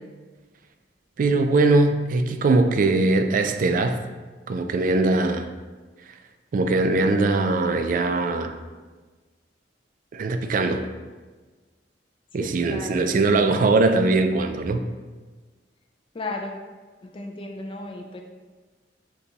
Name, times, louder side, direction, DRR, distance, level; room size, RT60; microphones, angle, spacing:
voice 1, 1.2-4.0 4.5-5.5 6.5-8.6 10.1-10.9 12.3-14.8, right 3 dB, 50° right, 7 dB, 0.3 m, -21 dB
voice 2, 12.4-13.1 16.1-16.6 17.0-18.2, left 2 dB, 30° left, 2 dB, 0.3 m, -34 dB
6.7 x 2.3 x 2.8 m, 1.3 s
head